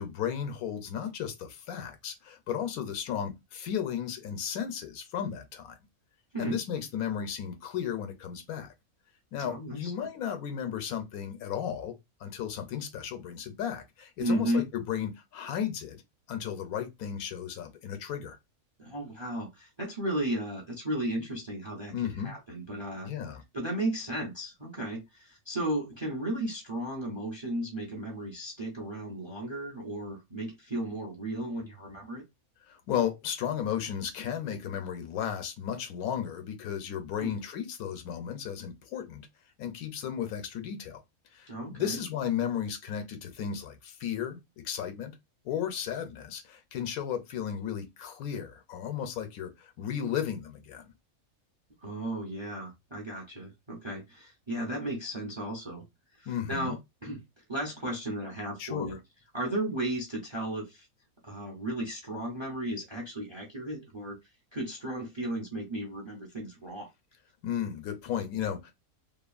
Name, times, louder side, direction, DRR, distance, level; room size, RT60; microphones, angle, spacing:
voice 1, 0.0-5.8 6.4-8.7 9.3-11.9 12.2-16.0 16.3-18.4 21.9-22.3 23.0-23.4 32.7-39.3 39.6-41.0 41.3-45.1 45.4-50.9 56.3-56.8 58.6-59.0 67.4-68.7, left 9 dB, 85° left, 1.1 m, -34 dB
voice 2, 9.4-10.1 14.2-14.6 18.8-21.9 22.2-23.1 23.5-32.2 37.2-37.3 41.5-42.0 51.8-55.8 56.2-57.2 57.5-59.0 59.3-60.9 61.2-64.2 64.5-66.9, right 1 dB, 30° right, 0.5 m, -34 dB
2.8 x 2.4 x 2.4 m
omnidirectional pair, 1.5 m